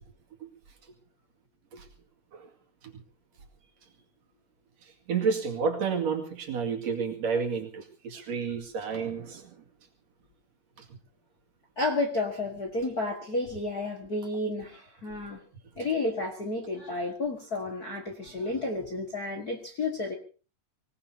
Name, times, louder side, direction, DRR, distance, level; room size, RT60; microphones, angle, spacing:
voice 1, 5.1-9.5, right 5 dB, 55° right, 3 dB, 3.1 m, -30 dB
voice 2, 11.8-15.4 15.8-20.1, left 2 dB, 35° left, 2 dB, 1.6 m, -31 dB
25.0 x 18.0 x 2.8 m, 0.36 s
omnidirectional pair, 3.9 m